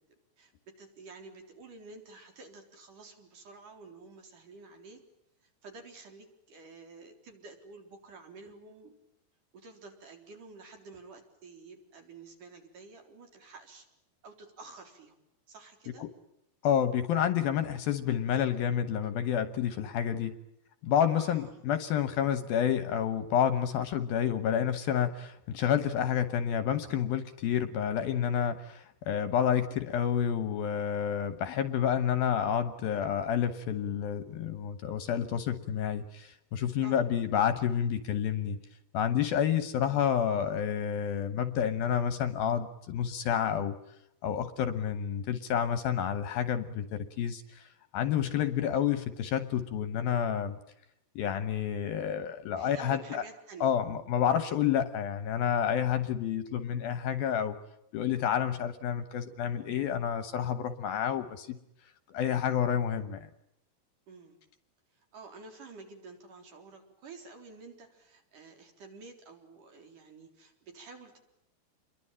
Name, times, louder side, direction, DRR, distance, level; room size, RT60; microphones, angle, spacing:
voice 1, 0.4-5.0 5.4-8.9 9.5-13.9 14.2-15.1 15.5-16.1 21.2-21.5 36.8-37.0 52.5-53.7 64.1-64.4 64.9-71.2, right 3 dB, 50° right, 5 dB, 5.1 m, -50 dB
voice 2, 16.6-20.4 20.8-38.6 38.9-43.8 44.2-50.6 51.2-53.2 53.6-57.6 57.9-61.6 62.1-63.3, left 9 dB, 70° left, 12 dB, 2.6 m, -29 dB
28.5 x 22.5 x 8.9 m, 0.82 s
omnidirectional pair, 5.0 m